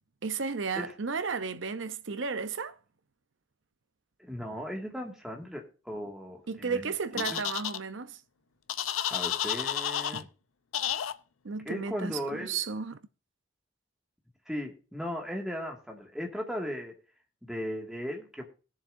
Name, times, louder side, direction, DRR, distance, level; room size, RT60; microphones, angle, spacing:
voice 1, 0.2-2.7 6.5-8.2 10.1-10.2 11.4-13.0, right 5 dB, 65° right, 0.7 m, -33 dB
voice 2, 4.2-7.4 9.1-10.3 11.7-12.6 14.5-17.0 17.4-18.5, equal, 5° right, 1.9 m, -37 dB
sound 1, 7.2-7.8 8.7-10.2 10.7-11.1, left 10 dB, 85° left, 0.6 m, -31 dB
20.0 x 7.2 x 2.6 m
head